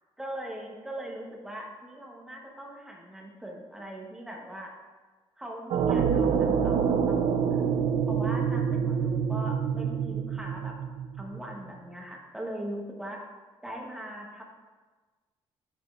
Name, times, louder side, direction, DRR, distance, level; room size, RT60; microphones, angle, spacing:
voice 1, 0.2-4.7 5.4-7.6 8.1-10.7 11.2-13.2 13.6-14.4, right 1 dB, 5° right, -1 dB, 0.8 m, -40 dB
sound 1, 5.7-11.6, right 7 dB, 70° right, 0.4 m, -26 dB
8.3 x 5.0 x 2.3 m, 1.3 s
cardioid pair, 155°, 11 cm